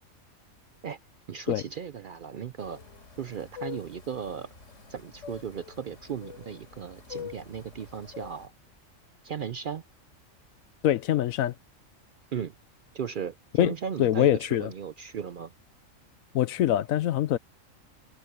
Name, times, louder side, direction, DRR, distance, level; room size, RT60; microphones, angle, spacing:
voice 1, 1.3-2.8 3.2-4.5 4.9-8.5 9.2-9.8 12.3-12.5 12.9-15.5, right 7 dB, 60° right, 0.5 m, -36 dB
sound 1, 2.6-8.5, left 8 dB, 65° left, 3.8 m, -45 dB
voice 2, 10.8-11.5 13.6-13.7 14.0-14.7 16.3-17.4, left 12 dB, 85° left, 1.1 m, -24 dB
omnidirectional pair, 1.4 m